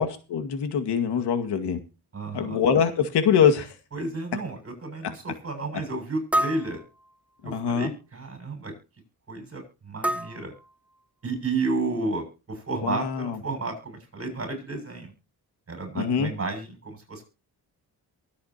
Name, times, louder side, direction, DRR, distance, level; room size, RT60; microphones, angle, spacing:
voice 1, 0.0-1.8 2.3-3.8 7.4-7.9 12.8-13.4 16.0-16.3, left 7 dB, 90° left, 6 dB, 2.1 m, -24 dB
voice 2, 2.1-2.6 3.9-6.8 7.4-8.7 9.3-10.5 11.2-15.1 15.7-17.2, right 3 dB, 35° right, 6 dB, 7.1 m, -32 dB
sound 1, 3.0-3.1 3.7-3.8 4.4-4.5 6.3-7.5 10.0-11.3, right 1 dB, 5° right, 0.7 m, -30 dB
23.5 x 8.5 x 2.9 m, 0.32 s
cardioid pair, 115°, 39 cm